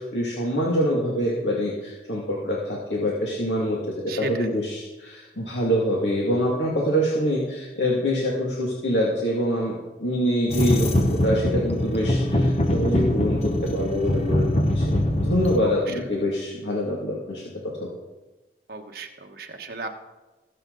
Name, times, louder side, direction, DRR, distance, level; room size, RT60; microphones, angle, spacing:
voice 1, 0.0-9.7 10.0-14.8 15.2-17.4, equal, 80° left, -4 dB, 2.3 m, -25 dB
voice 2, 4.1-4.6 15.6-16.0 18.7-19.9, right 3 dB, 55° right, 3 dB, 1.4 m, -35 dB
sound 1, 10.5-15.6, left 1 dB, 35° left, 1.0 m, -23 dB
21.5 x 7.7 x 4.0 m, 1.1 s
head